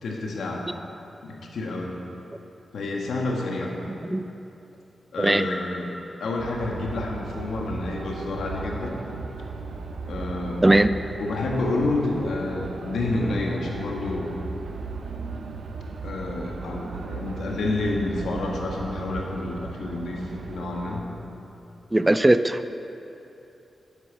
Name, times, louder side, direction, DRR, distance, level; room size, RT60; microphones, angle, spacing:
voice 1, 0.0-0.7 1.2-1.9 2.7-3.8 5.1-5.9 6.2-8.9 10.1-14.4 16.0-21.0, left 2 dB, 85° left, -1 dB, 1.5 m, -29 dB
sound 1, 6.4-21.0, right 4 dB, 80° right, 0.7 m, -36 dB
voice 2, 21.9-22.6, right 1 dB, 20° right, 12 dB, 0.4 m, -19 dB
8.0 x 7.0 x 8.2 m, 2.9 s
cardioid pair, 55°, 0 cm